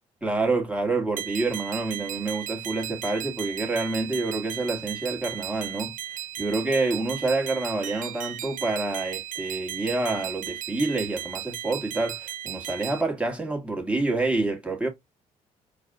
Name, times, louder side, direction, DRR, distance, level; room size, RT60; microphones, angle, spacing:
voice 1, 0.2-5.9 6.4-14.9, right 3 dB, 5° right, 1.7 m, -27 dB
sound 1, 1.2-13.0, right 12 dB, 50° right, 0.4 m, -36 dB
4.1 x 2.4 x 3.6 m
hypercardioid pair, 50°, 17 cm